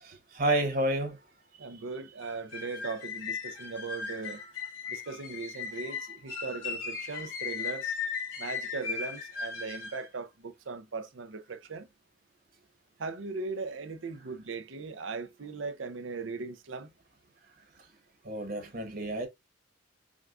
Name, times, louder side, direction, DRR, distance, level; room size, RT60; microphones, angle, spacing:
voice 1, 0.3-1.2 4.4-4.5 18.2-19.3, right 1 dB, 45° right, 1.2 m, -29 dB
voice 2, 1.6-4.4 4.9-8.0 8.4-11.9 13.0-16.9, right 4 dB, 70° right, 0.6 m, -38 dB
sound 1, 2.2-10.0, left 6 dB, 85° left, 2.4 m, -37 dB
6.2 x 2.4 x 2.4 m
head